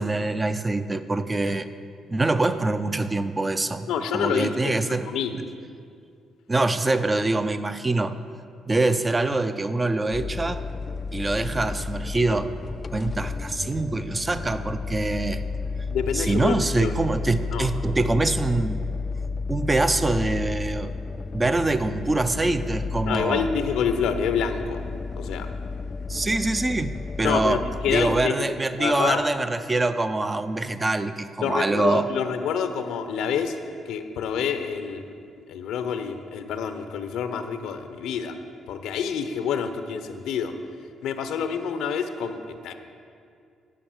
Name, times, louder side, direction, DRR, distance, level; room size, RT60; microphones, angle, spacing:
voice 1, 0.0-1.7 2.1-3.9 4.1-5.1 5.3-5.4 6.5-8.2 8.7-10.6 11.1-15.4 16.1-18.8 19.5-20.9 21.3-23.4 26.1-27.6 27.9-32.1, right 2 dB, 25° right, 10 dB, 0.5 m, -24 dB
voice 2, 3.9-5.3 15.9-17.0 17.5-17.7 23.1-24.8 25.2-25.5 27.2-29.2 31.4-33.6 33.9-35.0 35.5-38.4 38.7-40.5 41.0-42.7, left 7 dB, 85° left, 8 dB, 0.7 m, -27 dB
sound 1, 10.1-28.3, left 4 dB, 35° left, 0.3 m, -32 dB
10.0 x 5.3 x 7.2 m, 2.3 s
cardioid pair, 90°, 0 cm